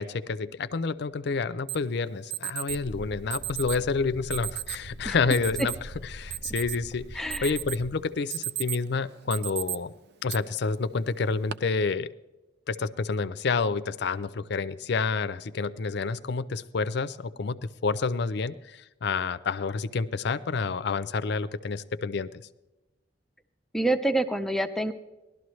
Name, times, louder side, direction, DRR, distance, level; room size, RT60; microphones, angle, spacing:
voice 1, 0.0-9.9 10.2-12.1 12.7-22.4, left 4 dB, 65° left, 14 dB, 0.5 m, -29 dB
Alarm, 1.7-1.8 2.3-2.8 3.3-3.8 4.3-4.8 5.3-5.8 6.2-6.9 7.3-7.8 8.2-8.9 9.3-9.8 10.3-10.4 11.2-11.5, right 15 dB, 65° right, 0.5 m, -34 dB
sound 1, 2.7-7.9, right 1 dB, 40° right, 0.9 m, -43 dB
voice 2, 7.2-7.5 23.7-24.9, right 1 dB, ahead, 7 dB, 0.5 m, -27 dB
18.0 x 12.0 x 3.1 m, 1.1 s
head